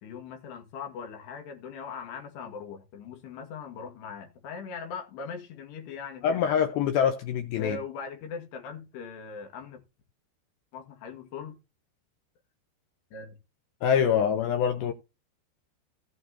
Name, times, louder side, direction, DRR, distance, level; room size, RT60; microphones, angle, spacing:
voice 1, 0.0-6.5 7.6-9.8 10.7-11.6 13.1-13.4, left 5 dB, 70° left, 3.9 m, -40 dB
voice 2, 6.2-7.8 13.8-14.9, left 8 dB, 85° left, 2.2 m, -25 dB
15.5 x 8.2 x 2.7 m
omnidirectional pair, 5.3 m